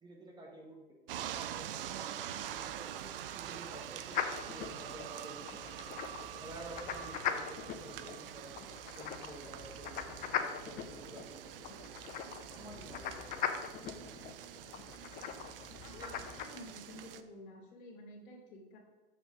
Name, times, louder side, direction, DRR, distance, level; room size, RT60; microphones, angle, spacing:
voice 1, 0.0-1.0 1.5-4.2 4.5-5.9 6.4-8.6 8.9-11.8 12.6-13.2 16.0-16.1, right 2 dB, 15° right, -1 dB, 1.4 m, -51 dB
sound 1, 1.1-17.2, right 10 dB, 60° right, 0.6 m, -45 dB
sound 2, 4.1-16.5, left 8 dB, 30° left, 0.6 m, -41 dB
voice 2, 16.4-18.8, left 1 dB, 55° left, 0 dB, 2.1 m, -51 dB
7.1 x 6.1 x 3.9 m, 1.1 s
figure-of-eight pair, 90°, 31 cm